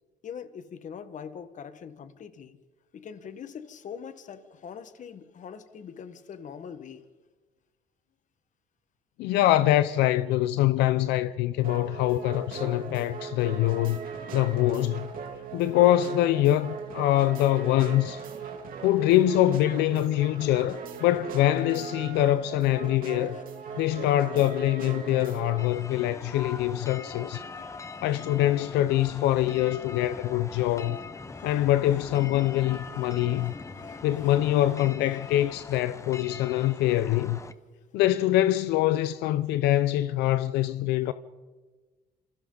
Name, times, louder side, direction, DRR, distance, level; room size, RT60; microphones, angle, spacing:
voice 1, 0.2-2.6 2.9-7.0 13.9-14.0 15.4-15.6 23.0-24.4 25.0-25.4 25.7-26.7 27.0-28.0 28.4-28.6 29.3-29.6 30.1-30.2 30.6-31.0 31.2-31.7 31.9-32.0 32.4-32.5 32.8-34.8 35.1-35.2, left 7 dB, 45° left, 1.5 m, -45 dB
voice 2, 9.2-14.0 14.3-15.1 15.5-18.2 18.8-23.4 23.8-27.4 28.0-31.0 31.4-33.5 34.0-37.4 37.9-41.1, left 14 dB, 90° left, 0.7 m, -24 dB
sound 1, 11.6-25.7, right 5 dB, 55° right, 3.0 m, -39 dB
sound 2, 25.6-37.5, left 4 dB, 15° left, 0.9 m, -42 dB
28.0 x 27.5 x 4.0 m
cardioid pair, 110°, 17 cm